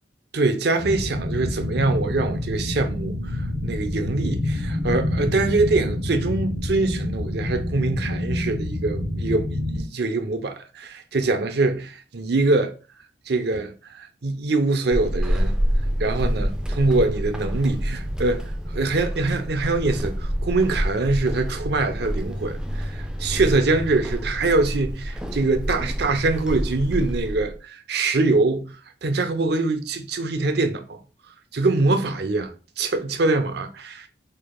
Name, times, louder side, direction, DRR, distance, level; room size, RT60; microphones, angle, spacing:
voice 1, 0.3-9.5 9.7-12.7 13.3-15.6 16.0-28.7 29.0-31.0 31.5-32.5 32.8-34.1, right 3 dB, 60° right, 0.6 m, -24 dB
sound 1, 0.8-9.8, left 1 dB, 15° left, 1.5 m, -27 dB
Walk footsteps / Squeak, 14.9-27.6, equal, 5° right, 0.3 m, -27 dB
4.6 x 3.3 x 2.2 m
head